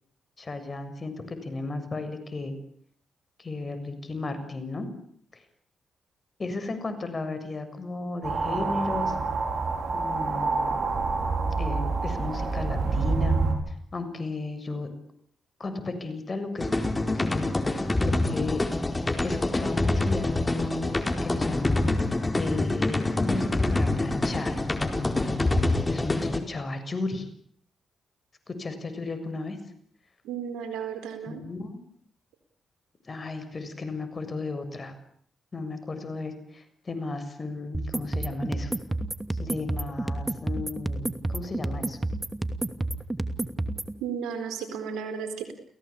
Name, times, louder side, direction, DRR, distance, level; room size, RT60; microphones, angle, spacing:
voice 1, 0.4-2.5 3.4-4.9 6.4-9.2 9.9-10.7 11.6-13.4 13.9-14.9 15.6-17.5 18.0-18.6 19.2-24.6 25.9-27.3 28.5-29.6 31.3-31.7 33.1-34.9 35.5-38.7 39.3-42.0, left 3 dB, 40° left, 10 dB, 7.1 m, -34 dB
sound 1, 8.2-13.6, right 4 dB, 60° right, 5.7 m, -27 dB
sound 2, 16.6-26.4, left 2 dB, 25° left, 4.3 m, -26 dB
voice 2, 30.2-31.5 44.0-45.5, right 7 dB, 85° right, 9 dB, 4.3 m, -34 dB
sound 3, 37.7-43.9, right 2 dB, 20° right, 2.7 m, -30 dB
29.5 x 17.5 x 8.7 m, 0.65 s
supercardioid pair, 50°, 0 cm